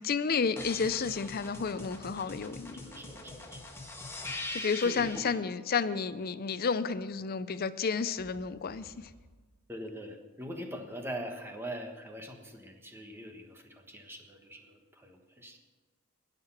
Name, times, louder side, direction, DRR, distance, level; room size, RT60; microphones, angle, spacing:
voice 1, 0.0-2.8 4.5-8.9, left 5 dB, 45° left, 14 dB, 0.5 m, -31 dB
sound 1, 0.6-5.4 8.2-9.2, left 2 dB, 10° left, 1.4 m, -43 dB
voice 2, 2.7-3.6 4.8-5.2 9.7-15.6, equal, 10° right, 4 dB, 1.3 m, -43 dB
19.5 x 6.6 x 5.9 m, 1.3 s
head